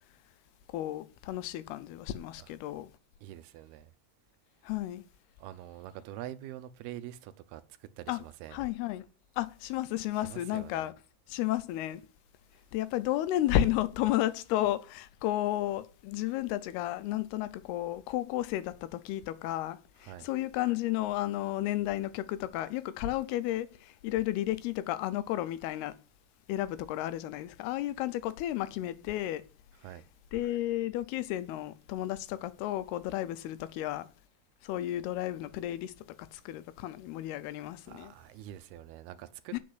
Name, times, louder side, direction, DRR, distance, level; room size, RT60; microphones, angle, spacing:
voice 1, 0.7-2.9 4.6-5.0 8.1-8.2 8.5-9.0 9.4-10.9 11.3-12.0 12.7-26.0 26.5-29.4 30.3-34.1 34.6-35.9 36.2-38.1 39.5-39.6, left 14 dB, 90° left, 2.7 m, -32 dB
voice 2, 3.2-3.9 5.4-8.6 10.1-10.9 20.0-20.3 29.8-30.0 37.9-39.6, right 13 dB, 85° right, 2.7 m, -45 dB
8.7 x 6.5 x 7.8 m
omnidirectional pair, 4.5 m